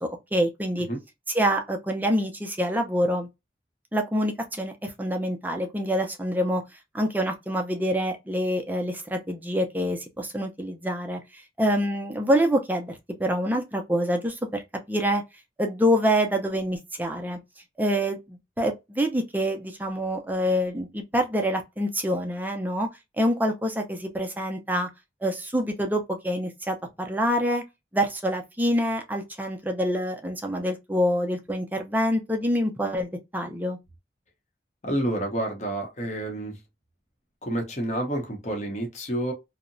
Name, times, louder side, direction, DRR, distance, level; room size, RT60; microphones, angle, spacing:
voice 1, 0.0-0.9 1.3-3.3 3.9-6.6 6.9-14.6 14.9-15.2 15.6-17.4 17.8-22.9 23.2-24.9 25.2-27.6 27.9-33.8, equal, 10° right, 0.4 m, -26 dB
voice 2, 34.8-36.6 37.4-39.3, right 1 dB, 40° left, 0.7 m, -29 dB
2.8 x 2.0 x 2.5 m
head